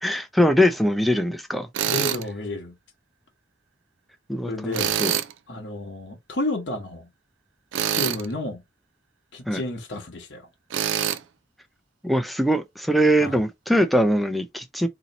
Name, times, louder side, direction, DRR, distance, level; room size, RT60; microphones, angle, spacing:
voice 1, 0.0-1.7 4.3-5.1 9.5-9.6 12.0-14.9, equal, ahead, 0.4 m, -22 dB
Tools, 1.7-2.2 4.7-5.3 7.7-8.3 10.7-11.2, right 10 dB, 70° right, 0.4 m, -25 dB
voice 2, 1.9-2.7 4.5-5.0 5.5-7.0 7.9-8.6 9.3-10.4 13.2-13.3, left 2 dB, 60° left, 0.9 m, -31 dB
2.8 x 2.7 x 4.0 m
head